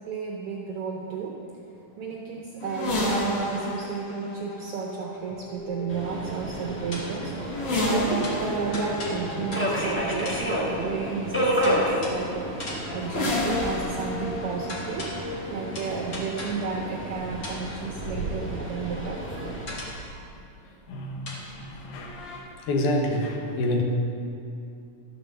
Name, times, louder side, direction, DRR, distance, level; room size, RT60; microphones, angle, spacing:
voice 1, 0.0-7.6 7.9-12.5 12.9-15.2 15.5-19.2, right 5 dB, 75° right, 0 dB, 1.3 m, -33 dB
sound 1, 2.6-20.4 21.4-22.4, left 1 dB, 50° left, 2.6 m, -33 dB
Subway metro underground, 5.9-19.7, equal, 15° left, 0.4 m, -31 dB
sound 2, 6.9-7.3 8.2-9.9 10.3-10.5 11.6-12.3 12.6-13.1 14.7-15.4 15.7-16.8 17.4-17.8 19.7-20.1 21.3-21.4, left 1 dB, 35° left, 1.8 m, -38 dB
voice 2, 20.9-22.2 22.7-23.8, left 1 dB, 80° left, 2 dB, 2.6 m, -28 dB
12.5 x 6.7 x 6.9 m, 2.6 s
omnidirectional pair, 3.4 m